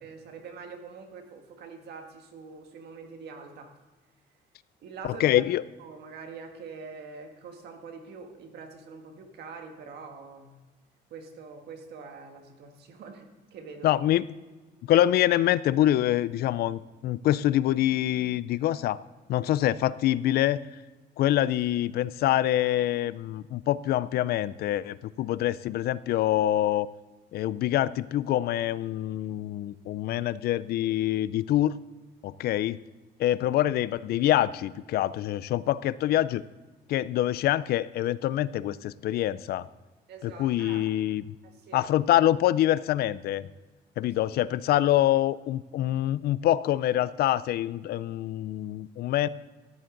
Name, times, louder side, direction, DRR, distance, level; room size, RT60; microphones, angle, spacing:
voice 1, 0.0-3.7 4.8-5.3 5.8-10.5 11.1-14.0 40.1-40.9 41.4-41.9, right 5 dB, 65° right, 4 dB, 1.7 m, -44 dB
voice 2, 5.1-5.6 13.8-14.2 14.9-19.0 19.3-20.6 21.2-26.9 27.3-31.7 32.2-32.8 33.2-36.4 36.9-39.7 40.2-41.2 41.7-43.5 44.0-49.3, left 13 dB, 60° left, 18 dB, 0.4 m, -25 dB
14.0 x 10.5 x 3.9 m, 1.2 s
cardioid pair, 160°, 18 cm